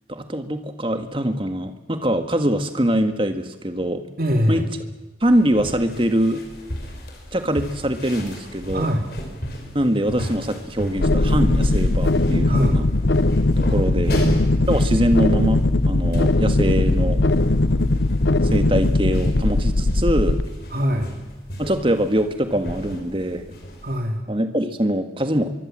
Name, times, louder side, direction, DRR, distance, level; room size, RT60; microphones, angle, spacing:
voice 1, 0.1-4.0 4.5-4.6 5.2-6.4 7.3-8.9 9.7-12.9 13.6-14.2 14.7-17.2 18.4-20.4 21.6-23.5 24.3-25.5, right 1 dB, 30° right, 7 dB, 1.7 m, -23 dB
voice 2, 4.2-4.6 8.7-9.0 12.5-12.8 14.1-14.5 20.7-21.1 23.8-24.2, equal, 50° right, 3 dB, 2.6 m, -22 dB
sound 1, 5.2-24.0, equal, 55° left, 5.4 m, -36 dB
sound 2, 11.0-20.4, left 2 dB, 75° left, 0.9 m, -19 dB
24.5 x 23.5 x 7.6 m, 1.1 s
head